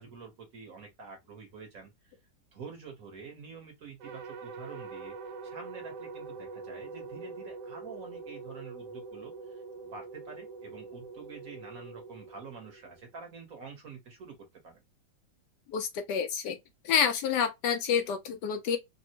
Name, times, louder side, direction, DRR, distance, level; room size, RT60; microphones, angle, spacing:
voice 1, 0.0-2.1 2.5-14.8, right 5 dB, 55° right, 1.1 m, -47 dB
sound 1, 4.0-13.3, right 4 dB, 75° right, 1.1 m, -44 dB
voice 2, 15.7-16.6 16.8-18.8, left 7 dB, 75° left, 1.1 m, -28 dB
3.4 x 2.0 x 2.7 m
omnidirectional pair, 2.0 m